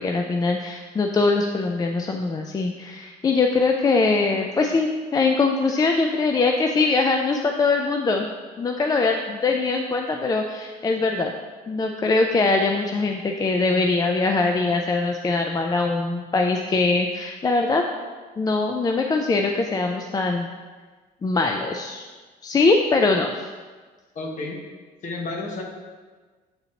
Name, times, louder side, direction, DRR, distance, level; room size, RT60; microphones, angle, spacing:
voice 1, 0.0-8.3 8.6-11.3 11.7-17.8 18.4-20.5 21.2-22.0 22.4-23.5, left 3 dB, 20° left, 3 dB, 0.4 m, -22 dB
voice 2, 24.1-24.6 25.0-25.6, left 2 dB, 45° left, 0 dB, 1.2 m, -31 dB
8.1 x 4.0 x 2.9 m, 1.4 s
cardioid pair, 110°, 17 cm